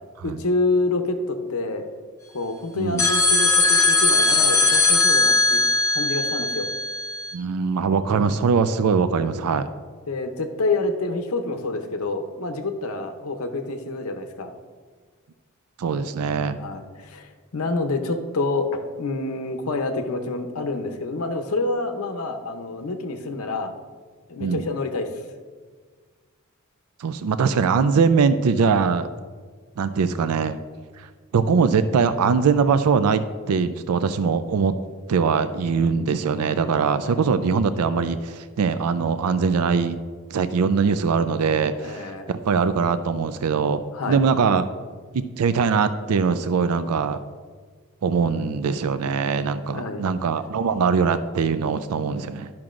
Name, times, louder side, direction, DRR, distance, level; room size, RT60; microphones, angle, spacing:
voice 1, 0.2-1.9 2.3-5.6 5.9-6.7 8.2-8.4 10.1-14.5 16.6-23.7 24.3-25.1 37.0-37.2 41.8-42.3 43.9-44.2 49.5-50.0, left 3 dB, 75° left, 7 dB, 0.7 m, -27 dB
voice 2, 2.7-3.1 7.3-9.7 15.8-16.6 24.4-24.7 27.0-29.1 29.8-30.6 31.0-31.1 31.3-34.7 35.1-40.0 40.3-43.8 44.1-44.7 45.1-47.2 48.0-52.5, right 5 dB, 85° right, 12 dB, 0.4 m, -22 dB
sound 1, 3.0-7.3, left 3 dB, 15° left, 0.7 m, -19 dB
12.5 x 5.9 x 2.5 m, 1.5 s
head